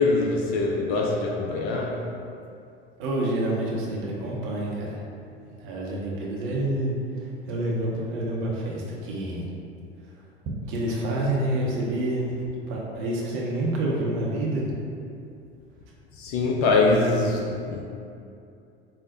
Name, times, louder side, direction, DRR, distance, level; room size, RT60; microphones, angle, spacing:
voice 1, 0.0-2.1 16.2-17.8, left 3 dB, 40° left, 0 dB, 0.4 m, -23 dB
voice 2, 3.0-5.0 5.6-9.5 10.7-14.7, right 1 dB, 40° right, -3 dB, 0.7 m, -28 dB
4.9 x 2.0 x 2.6 m, 2.6 s
figure-of-eight pair, 75°, 32 cm